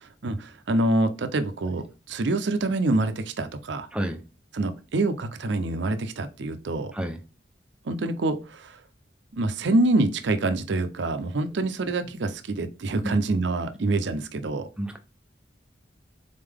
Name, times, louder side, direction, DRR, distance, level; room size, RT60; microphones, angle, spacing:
voice 1, 0.0-3.9 4.5-6.9 7.8-8.8 9.3-14.7, right 2 dB, 70° right, 9 dB, 0.5 m, -26 dB
voice 2, 3.9-4.2 6.9-7.2 14.8-15.0, right 1 dB, 5° right, 5 dB, 0.5 m, -29 dB
3.9 x 3.7 x 3.4 m, 0.32 s
head